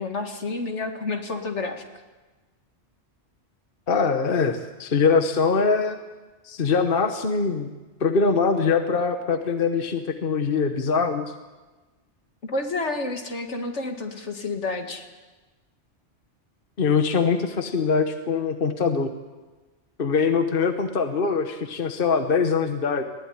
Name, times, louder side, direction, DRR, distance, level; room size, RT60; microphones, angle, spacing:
voice 1, 0.0-1.8 12.4-15.1, left 3 dB, 75° left, 5 dB, 2.3 m, -29 dB
voice 2, 3.9-6.0 6.4-7.7 8.0-11.3 16.8-19.1 20.0-23.0, left 5 dB, 50° left, 7 dB, 1.3 m, -23 dB
20.0 x 15.5 x 9.9 m, 1.2 s
omnidirectional pair, 1.2 m